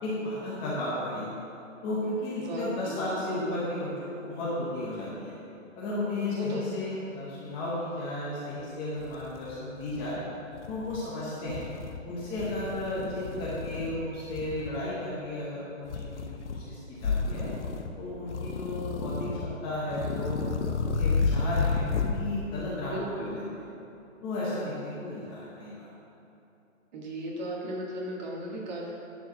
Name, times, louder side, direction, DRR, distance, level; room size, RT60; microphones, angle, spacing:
voice 1, 0.0-1.4 1.8-5.4 5.8-10.2 10.7-11.6 12.0-17.5 18.0-20.4 20.8-23.6 24.2-25.9, left 1 dB, 15° left, -8 dB, 0.9 m, -34 dB
voice 2, 2.4-3.0 6.3-6.7 22.8-23.4 26.9-28.9, right 1 dB, 35° right, -2 dB, 1.6 m, -36 dB
sound 1, 8.6-8.7 9.0-10.2 10.5-11.0 11.5-12.0 12.4-14.0 14.3-14.8 15.9-16.6 17.0-17.9 18.3-19.5 19.9-22.2, left 4 dB, 60° left, 0.9 m, -31 dB
10.5 x 4.9 x 6.2 m, 2.8 s
hypercardioid pair, 150°, 40 cm